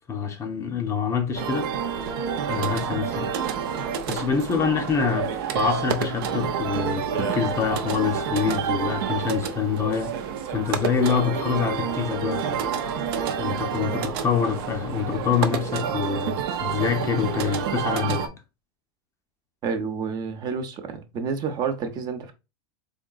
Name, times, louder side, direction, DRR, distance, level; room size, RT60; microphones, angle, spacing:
voice 1, 0.1-1.7 2.0-2.1 2.4-3.3 3.6-10.1 10.5-12.8 13.4-18.3, left 6 dB, 20° left, 0.5 m, -26 dB
sound 1, 1.3-18.3, right 7 dB, 65° right, 0.7 m, -28 dB
voice 2, 19.6-22.3, right 6 dB, 30° right, 0.7 m, -29 dB
3.7 x 3.7 x 2.3 m
supercardioid pair, 145°, 13 cm